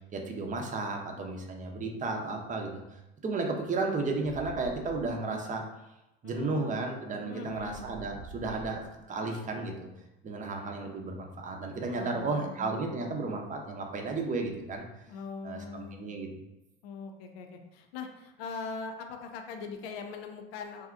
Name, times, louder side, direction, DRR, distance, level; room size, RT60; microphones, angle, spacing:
voice 1, 0.1-5.7 6.2-8.8 9.1-9.9 10.2-14.8 15.4-16.3, right 3 dB, 25° right, 2 dB, 0.7 m, -33 dB
sound 1, 4.2-5.2 7.4-9.0 13.2-14.8, right 4 dB, 85° right, 1.0 m, -49 dB
voice 2, 6.2-6.7 7.2-7.9 11.9-13.3 15.1-16.1 16.8-20.9, left 4 dB, 80° left, 4 dB, 0.6 m, -42 dB
2.7 x 2.3 x 3.6 m, 0.95 s
supercardioid pair, 85°, 30 cm